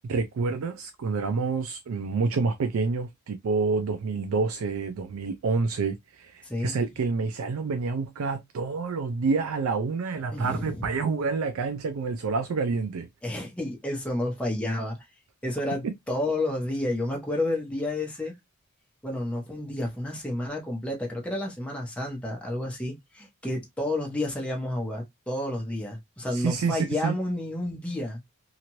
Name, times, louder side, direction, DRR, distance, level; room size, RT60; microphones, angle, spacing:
voice 1, 0.1-13.1 26.3-27.1, right 4 dB, 65° right, 0.4 m, -28 dB
voice 2, 6.4-6.8 10.3-10.9 13.2-15.0 15.4-18.3 19.0-28.2, left 1 dB, 5° left, 0.9 m, -30 dB
2.9 x 2.5 x 2.9 m
head